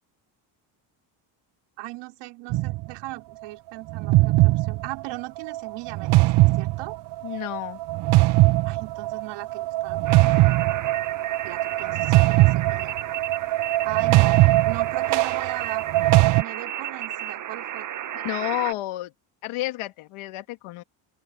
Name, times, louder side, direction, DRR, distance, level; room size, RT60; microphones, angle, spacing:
voice 1, 1.8-7.0 8.6-10.6 11.4-13.0 13.8-15.9 16.3-17.9, right 20 dB, 80° right, 4.2 m, -38 dB
sound 1, 2.5-2.9 3.9-16.4, right 19 dB, 55° right, 0.5 m, -21 dB
voice 2, 7.2-7.8 18.1-19.1 19.4-20.8, left 17 dB, 75° left, 2.3 m, -30 dB
sound 2, 10.1-18.7, right 11 dB, 40° right, 0.9 m, -33 dB
open air
supercardioid pair, 85°, 50 cm